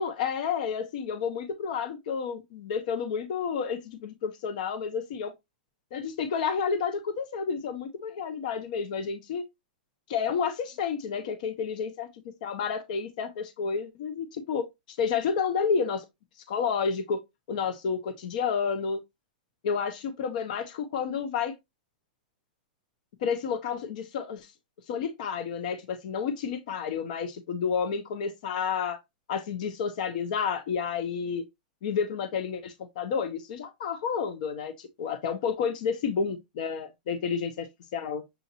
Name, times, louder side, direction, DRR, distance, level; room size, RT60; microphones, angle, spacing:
voice 1, 0.0-5.3 5.9-9.4 10.1-12.1 12.4-16.0 16.5-17.2 17.5-19.0 19.6-21.5 23.2-24.5 24.9-29.0 29.3-31.4 31.8-37.6 37.9-38.2, left 6 dB, 60° left, 0.9 m, -30 dB
7.0 x 2.6 x 2.8 m
hypercardioid pair, 140°, 5 cm